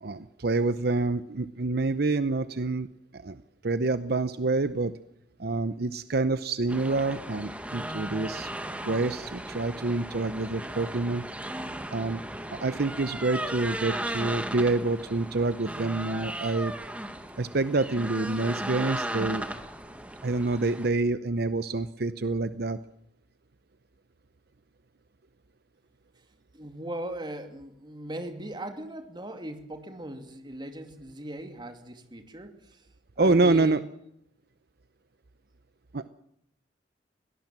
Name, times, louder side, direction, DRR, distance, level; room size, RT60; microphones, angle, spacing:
voice 1, 0.0-2.9 3.1-4.9 5.4-8.5 8.8-11.2 11.9-12.2 12.5-16.7 17.4-19.4 20.2-22.8 33.2-33.8 35.9-36.1, right 3 dB, 60° right, 13 dB, 0.8 m, -27 dB
sound 1, 6.7-20.9, right 1 dB, 10° right, 1.8 m, -36 dB
voice 2, 26.5-32.8 33.2-33.9, right 1 dB, 25° right, 7 dB, 2.6 m, -39 dB
22.5 x 18.0 x 7.6 m, 0.76 s
head